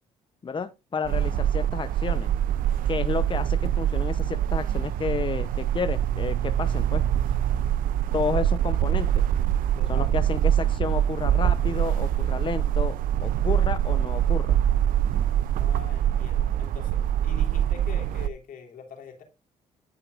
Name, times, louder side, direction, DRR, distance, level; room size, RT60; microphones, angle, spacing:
voice 1, 0.4-2.3 2.9-7.0 8.1-9.2 9.9-13.0 13.2-14.6, left 5 dB, 35° left, 0.8 m, -31 dB
sound 1, 1.0-18.3, right 11 dB, 70° right, 0.5 m, -24 dB
voice 2, 9.7-10.2 15.6-19.2, left 6 dB, 70° left, 3.2 m, -44 dB
13.5 x 5.7 x 2.5 m
supercardioid pair, 60°, 15 cm